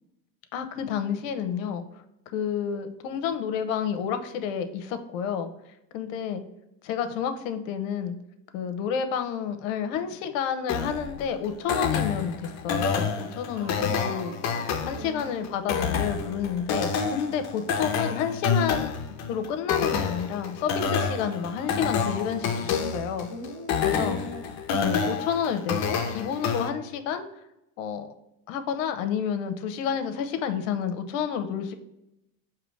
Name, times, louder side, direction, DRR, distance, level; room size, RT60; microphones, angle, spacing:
voice 1, 0.5-1.8 2.3-5.5 5.9-6.4 6.8-8.2 8.5-13.7 14.0-14.3 14.9-19.0 19.3-23.3 23.8-24.2 24.7-27.2 27.8-28.1 28.5-31.7, left 7 dB, 75° left, 9 dB, 0.7 m, -30 dB
sound 1, 10.7-26.7, left 6 dB, 45° left, 0.7 m, -28 dB
voice 2, 13.5-15.5 23.3-24.5, left 1 dB, 60° right, 0 dB, 1.5 m, -41 dB
4.9 x 2.9 x 3.2 m, 0.88 s
supercardioid pair, 120°, 39 cm